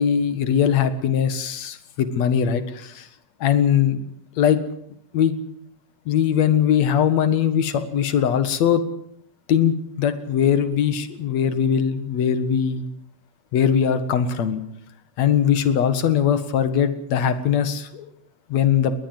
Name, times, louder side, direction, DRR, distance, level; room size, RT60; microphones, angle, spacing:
voice 1, 0.0-3.1 3.4-4.0 4.4-4.6 5.1-5.3 6.1-8.8 9.5-12.9 13.5-14.6 15.2-18.1 18.5-18.9, left 8 dB, 55° left, 12 dB, 2.6 m, -20 dB
21.5 x 20.0 x 7.8 m, 0.70 s
omnidirectional pair, 3.9 m